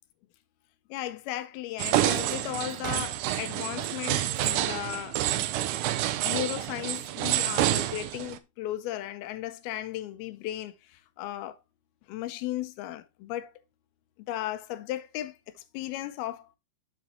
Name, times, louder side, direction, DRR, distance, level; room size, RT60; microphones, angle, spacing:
voice 1, 0.9-5.2 6.2-11.6 12.1-13.5 14.3-16.5, left 14 dB, 85° left, 2.7 m, -35 dB
sound 1, 1.8-8.4, right 13 dB, 85° right, 1.9 m, -28 dB
7.3 x 7.1 x 3.1 m
omnidirectional pair, 4.3 m